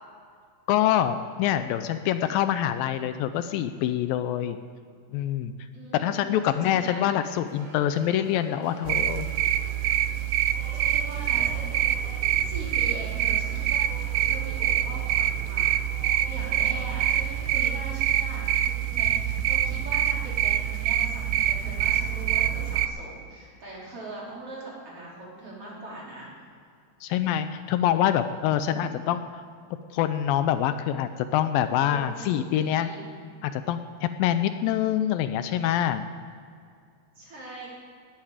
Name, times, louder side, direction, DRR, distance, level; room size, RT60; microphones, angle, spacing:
voice 1, 0.7-4.6 5.1-5.5 5.9-9.3 27.0-29.4 29.9-32.9 33.4-36.0, left 11 dB, 80° left, 10 dB, 2.3 m, -25 dB
voice 2, 5.7-7.1 10.7-11.8 12.3-13.8 14.2-26.3 28.5-29.1 31.9-33.1 37.2-37.7, right 2 dB, 40° right, -6 dB, 4.8 m, -41 dB
sound 1, 6.8-17.7, right 2 dB, 65° right, 3.8 m, -48 dB
sound 2, 8.8-22.9, right 11 dB, 80° right, 1.9 m, -25 dB
18.0 x 13.5 x 5.0 m, 2.3 s
omnidirectional pair, 4.2 m